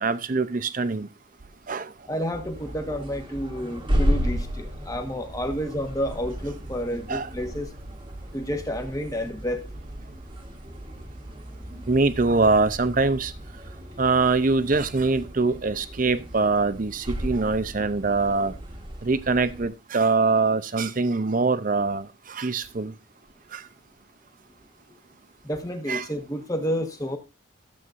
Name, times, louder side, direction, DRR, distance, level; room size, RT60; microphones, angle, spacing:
voice 1, 0.0-1.1 1.7-1.9 7.1-7.3 11.9-13.3 14.0-18.5 19.0-22.9 23.5-23.6 25.9-26.1, right 3 dB, 40° right, 0.6 m, -23 dB
voice 2, 2.1-7.7 8.3-9.6 25.4-27.2, equal, 15° left, 1.3 m, -30 dB
sound 1, 2.3-19.7, equal, 25° right, 1.4 m, -34 dB
14.0 x 7.9 x 2.5 m
head